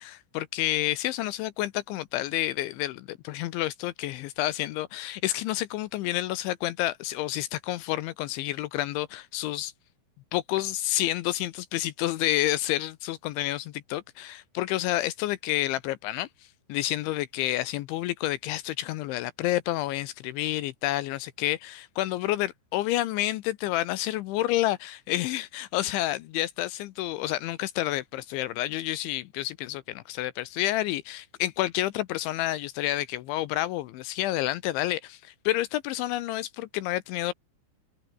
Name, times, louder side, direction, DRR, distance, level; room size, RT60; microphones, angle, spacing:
voice 1, 0.0-9.7 10.3-16.3 16.7-37.3, left 15 dB, 75° left, 3.1 m, -29 dB
omnidirectional pair, 5.7 m